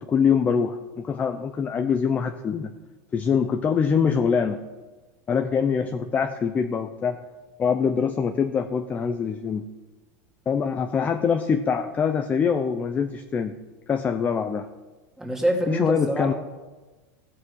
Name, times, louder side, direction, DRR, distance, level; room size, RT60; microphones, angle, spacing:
voice 1, 0.0-2.7 3.1-4.6 5.3-7.2 7.6-9.6 10.5-13.6 13.9-14.7 15.7-16.3, left 6 dB, 15° left, 8 dB, 0.5 m, -24 dB
voice 2, 15.2-16.3, equal, 5° right, 0 dB, 2.1 m, -25 dB
16.0 x 7.6 x 6.3 m, 1.2 s
supercardioid pair, 160°, 9 cm